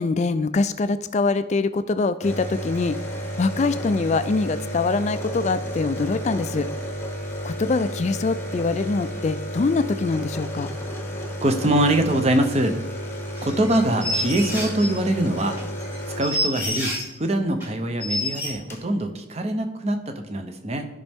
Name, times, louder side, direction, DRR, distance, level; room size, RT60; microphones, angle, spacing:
voice 1, 0.0-3.0 3.4-6.7 7.4-10.7, left 3 dB, 35° left, 12 dB, 0.3 m, -24 dB
sound 1, 2.2-16.8 18.2-18.3 18.4-18.9, equal, 10° left, 0.9 m, -32 dB
voice 2, 11.4-12.8 13.4-15.6 16.2-20.9, right 1 dB, 30° right, 6 dB, 0.7 m, -23 dB
sound 2, 13.4-14.9 15.4-17.2 17.6-17.7 18.0-18.5, equal, 10° right, 1.6 m, -28 dB
11.5 x 5.4 x 3.5 m, 0.95 s
head